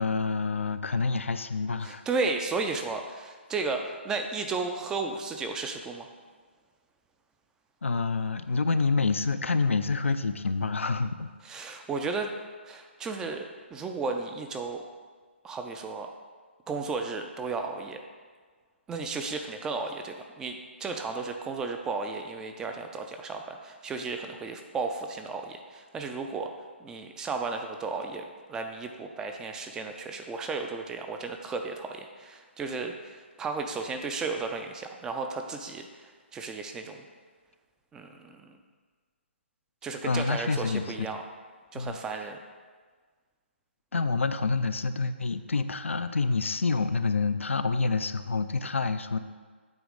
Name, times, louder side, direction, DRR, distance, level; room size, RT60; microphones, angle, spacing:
voice 1, 0.0-2.0 7.8-11.3 40.0-41.1 41.7-42.0 43.9-49.2, left 4 dB, 80° left, 10 dB, 0.4 m, -27 dB
voice 2, 1.8-6.1 11.4-12.3 12.6-14.8 15.4-16.1 16.7-18.0 18.9-26.5 26.8-28.2 28.5-37.0 37.9-38.6 39.8-41.2 41.7-42.4, right 4 dB, 10° right, 5 dB, 0.4 m, -34 dB
8.0 x 3.1 x 5.2 m, 1.5 s
figure-of-eight pair, 140°, 7 cm